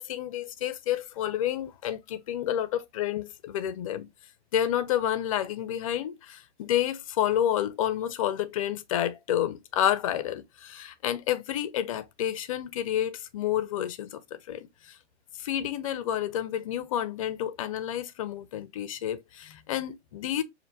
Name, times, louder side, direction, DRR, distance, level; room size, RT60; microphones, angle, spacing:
voice 1, 0.0-4.1 4.5-15.0 15.4-20.4, left 11 dB, 30° left, 0.4 m, -30 dB
5.3 x 2.6 x 2.5 m
hypercardioid pair, 140°, 35 cm